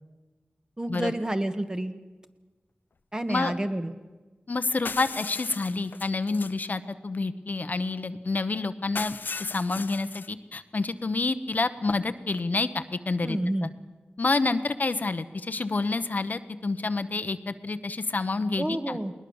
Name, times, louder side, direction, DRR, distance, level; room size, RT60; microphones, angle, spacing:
voice 1, 0.8-1.9 3.1-3.9 13.2-13.7 18.6-19.1, right 1 dB, 20° right, 8 dB, 1.5 m, -29 dB
voice 2, 4.5-13.7 14.2-19.0, left 3 dB, 55° left, 11 dB, 1.0 m, -28 dB
sound 1, 4.8-6.6 8.9-10.3, left 4 dB, 75° left, 0.6 m, -37 dB
20.5 x 20.0 x 7.2 m, 1.2 s
wide cardioid pair, 70°, 3 cm